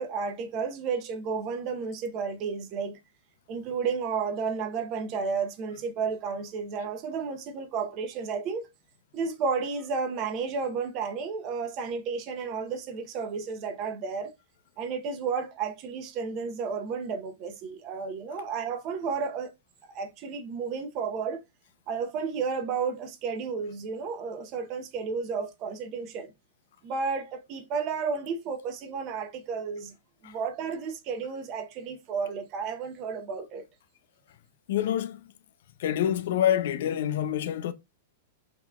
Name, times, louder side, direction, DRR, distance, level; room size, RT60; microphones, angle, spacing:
voice 1, 0.0-3.0 3.5-8.7 9.1-14.3 14.8-19.5 19.9-21.4 21.9-26.3 26.8-29.9 30.2-33.6, right 5 dB, 35° right, 0.9 m, -32 dB
voice 2, 34.7-35.3 35.8-37.7, left 10 dB, 65° left, 0.6 m, -27 dB
6.0 x 2.9 x 2.3 m
supercardioid pair, 155°, 0 cm